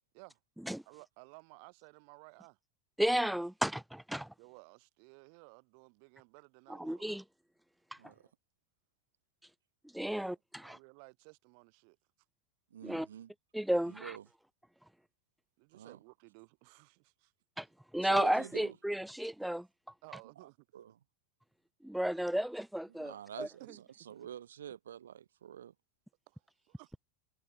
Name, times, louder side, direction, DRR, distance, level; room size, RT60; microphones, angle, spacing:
voice 1, 0.9-2.6 4.4-7.1 10.1-12.0 15.6-17.3 20.0-20.7 22.1-22.2 23.4-23.8 26.3-27.0, right 40 dB or more, 55° right, 3.9 m, -56 dB
voice 2, 3.0-4.3 6.8-7.2 9.9-10.8 12.8-13.1 13.5-14.1 17.6-17.7 17.9-19.7 21.8-23.5, right 1 dB, ahead, 0.3 m, -33 dB
voice 3, 8.0-8.3 12.7-13.3 13.9-14.3 15.7-16.0 18.0-18.8 20.4-21.0 23.0-23.5 23.7-25.7, right 10 dB, 75° right, 4.0 m, -47 dB
figure-of-eight pair, 85°, 0 cm